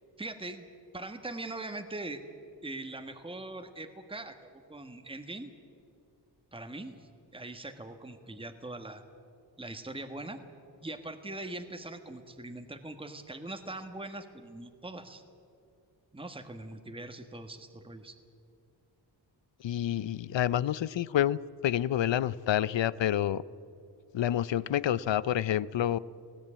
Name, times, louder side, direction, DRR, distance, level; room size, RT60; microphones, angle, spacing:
voice 1, 0.2-0.6 0.9-2.2 2.6-4.3 4.7-5.5 6.5-9.0 9.6-10.4 10.8-15.2 16.1-18.2, right 2 dB, 10° right, 6 dB, 1.4 m, -41 dB
voice 2, 19.6-23.4 24.1-26.0, left 11 dB, 75° left, 19 dB, 0.6 m, -28 dB
19.0 x 17.0 x 8.7 m, 2.5 s
cardioid pair, 65°, 44 cm